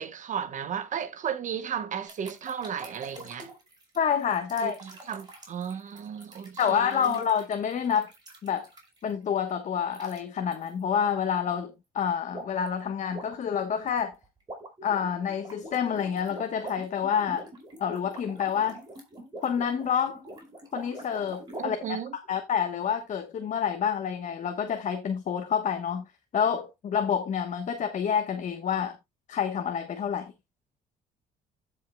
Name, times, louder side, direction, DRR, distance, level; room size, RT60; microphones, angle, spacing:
voice 1, 0.0-3.5 4.6-7.2 21.6-22.2, right 8 dB, 45° right, 1.1 m, -34 dB
sound 1, 2.1-9.1 9.9-10.2 10.5-10.7 12.3-12.7 13.0-21.6, right 2 dB, 25° right, 4.9 m, -45 dB
voice 2, 4.0-4.8 6.6-8.1 8.4-8.7 9.0-14.1 14.8-17.4 17.8-18.8 19.4-20.2 20.7-22.0 22.3-26.0 26.3-29.0 29.3-30.3, left 7 dB, 45° left, 1.1 m, -28 dB
16.0 x 5.6 x 2.2 m
cardioid pair, 110°, 17 cm